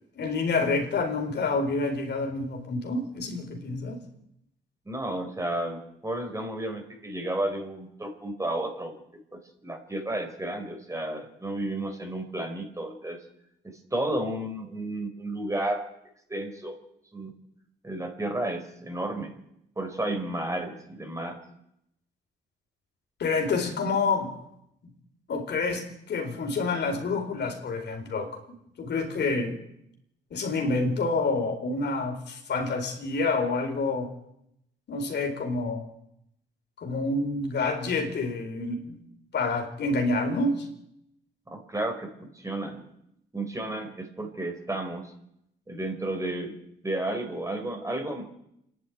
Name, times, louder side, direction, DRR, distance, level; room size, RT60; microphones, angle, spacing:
voice 1, 0.2-4.0 23.2-24.3 24.8-24.9 25.3-28.3 28.8-29.6 30.3-34.1 34.9-35.9 36.8-39.0 39.3-40.7, left 3 dB, 60° left, 3 dB, 4.6 m, -28 dB
voice 2, 4.9-9.0 9.3-13.2 13.6-15.8 16.3-16.8 17.1-17.3 17.8-19.3 19.8-21.4 41.5-42.8 43.3-45.1 45.7-46.6 46.8-48.3, right 1 dB, 15° right, 5 dB, 4.3 m, -32 dB
26.5 x 11.5 x 9.4 m, 0.79 s
cardioid pair, 90°, 20 cm